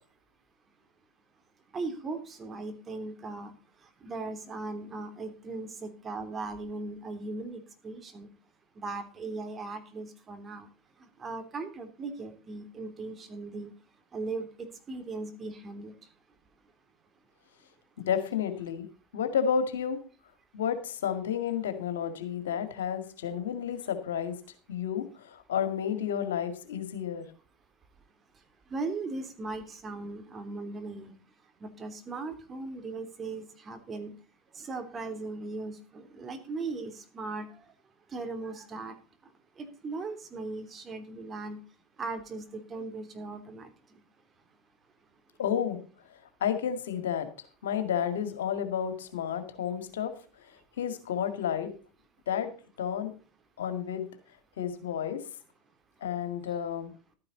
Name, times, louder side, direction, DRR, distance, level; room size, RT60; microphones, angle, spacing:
voice 1, 1.7-3.5 4.0-8.3 8.8-10.7 11.2-13.7 14.1-14.5 14.9-15.9 28.7-31.1 31.6-34.1 34.6-37.5 38.1-38.9 39.6-41.6 42.0-43.7, right 3 dB, 30° right, 7 dB, 3.0 m, -38 dB
voice 2, 18.0-18.9 19.1-20.0 20.5-24.4 24.7-27.3 45.4-45.8 46.4-47.3 47.6-50.1 50.8-51.7 52.3-52.5 52.8-53.2 53.6-54.1 54.6-55.2 56.0-56.9, left 8 dB, 85° left, 9 dB, 2.0 m, -31 dB
13.0 x 9.9 x 3.9 m, 0.36 s
hypercardioid pair, 85°, 0 cm